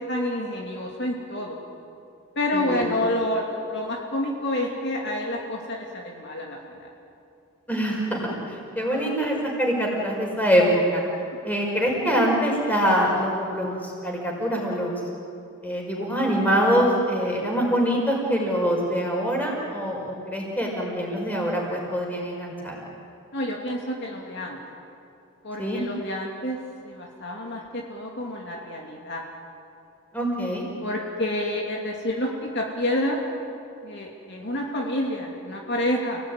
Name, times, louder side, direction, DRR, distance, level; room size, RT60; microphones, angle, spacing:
voice 1, 0.1-1.6 2.4-6.9 23.3-24.6 25.4-26.6 26.8-29.2 30.8-33.2 33.8-36.2, left 1 dB, 50° left, -1 dB, 2.8 m, -28 dB
voice 2, 2.5-2.8 7.7-11.0 11.4-15.0 15.6-22.8 25.6-25.8 30.1-30.6, equal, 5° left, -2 dB, 5.5 m, -24 dB
30.0 x 18.5 x 9.8 m, 2.6 s
head